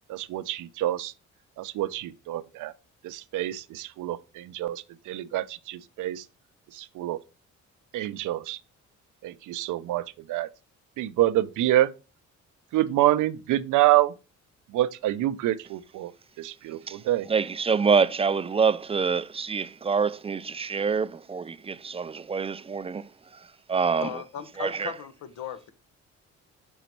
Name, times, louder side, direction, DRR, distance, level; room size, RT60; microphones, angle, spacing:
voice 1, 0.1-1.1 1.6-2.7 3.0-6.3 6.7-7.2 7.9-8.6 9.2-10.5 11.0-11.9 12.7-14.1 14.7-17.3, right 14 dB, 80° right, 0.6 m, -27 dB
voice 2, 17.3-24.1 24.6-25.0, right 5 dB, 20° right, 0.3 m, -26 dB
voice 3, 24.0-25.7, left 9 dB, 70° left, 0.9 m, -37 dB
6.2 x 4.0 x 4.4 m
cardioid pair, 90°, 30 cm